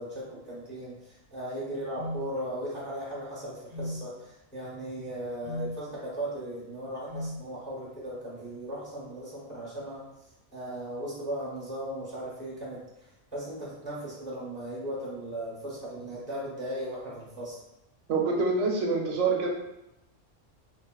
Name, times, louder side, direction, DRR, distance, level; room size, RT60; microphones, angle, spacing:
voice 1, 0.0-10.0 10.5-12.8 13.3-17.6, right 1 dB, 10° left, -7 dB, 0.6 m, -37 dB
sound 1, 2.0-2.2 3.7-4.0 5.4-5.7 7.1-7.4, equal, 45° right, 0.7 m, -35 dB
voice 2, 18.1-19.5, right 4 dB, 90° right, 0 dB, 1.0 m, -26 dB
3.0 x 2.7 x 2.3 m, 0.91 s
omnidirectional pair, 1.3 m